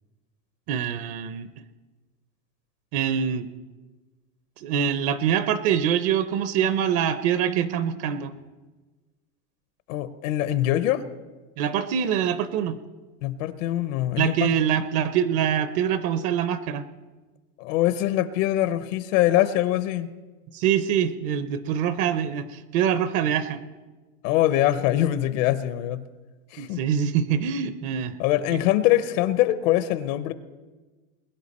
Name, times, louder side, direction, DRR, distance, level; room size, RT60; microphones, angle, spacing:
voice 1, 0.7-1.5 2.9-3.5 4.6-8.3 11.6-12.8 14.2-16.9 20.5-23.6 26.6-28.2 28.5-28.6, right 8 dB, 50° right, 13 dB, 0.7 m, -24 dB
voice 2, 9.9-11.1 13.2-14.5 17.6-20.1 24.2-26.0 26.5-26.8 28.2-30.3, left 14 dB, 75° left, 13 dB, 0.9 m, -23 dB
21.5 x 10.5 x 4.2 m, 1.3 s
supercardioid pair, 160°, 39 cm